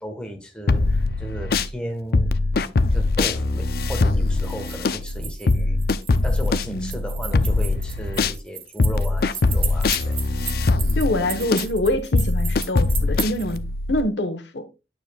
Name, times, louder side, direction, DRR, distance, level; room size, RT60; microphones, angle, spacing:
voice 1, 0.0-2.3 2.6-5.8 6.2-10.2, equal, 5° left, 1.3 m, -35 dB
sound 1, 0.7-1.7 2.1-8.4 8.8-14.0, left 3 dB, 55° left, 0.5 m, -22 dB
sound 2, 4.3-13.6, right 7 dB, 30° right, 0.9 m, -35 dB
voice 2, 10.9-13.6 13.9-14.6, left 1 dB, 75° left, 1.1 m, -25 dB
9.4 x 6.9 x 2.3 m
head